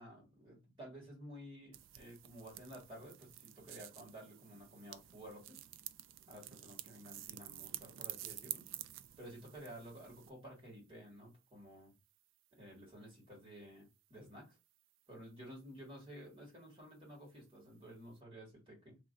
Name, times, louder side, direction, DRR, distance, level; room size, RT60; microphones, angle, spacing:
voice 1, 0.0-5.6 6.3-8.7 9.2-11.9 12.5-14.6 15.1-19.0, equal, 25° right, 1.7 m, -53 dB
sound 1, 1.7-10.3, right 13 dB, 80° right, 0.3 m, -50 dB
3.0 x 2.4 x 3.8 m
head